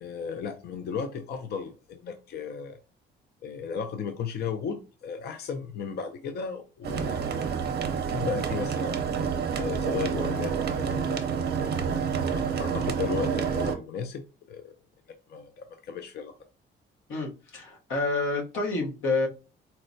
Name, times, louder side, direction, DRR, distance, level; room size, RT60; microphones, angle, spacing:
voice 1, 0.0-2.8 3.4-7.4 7.9-9.0 9.6-11.6 12.2-14.2 14.5-14.8 15.3-16.3, left 6 dB, 55° left, 0.4 m, -35 dB
sound 1, 6.8-13.8, right 6 dB, 55° right, 0.6 m, -28 dB
voice 2, 17.1-19.3, left 3 dB, 85° left, 1.0 m, -28 dB
4.1 x 2.1 x 2.6 m
cardioid pair, 90°, 20 cm